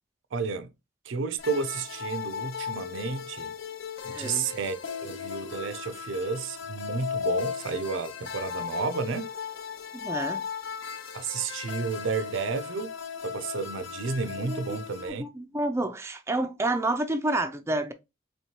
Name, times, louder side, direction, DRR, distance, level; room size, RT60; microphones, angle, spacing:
voice 1, 0.3-0.7 1.1-3.5 4.0-9.3 11.1-12.9 13.2-15.3, right 4 dB, 70° right, 0.5 m, -31 dB
sound 1, 1.4-15.1, left 7 dB, 70° left, 0.7 m, -36 dB
voice 2, 4.1-4.5 9.9-10.4 14.4-14.8 15.2-17.9, right 2 dB, 15° right, 0.4 m, -29 dB
4.5 x 3.1 x 2.8 m
head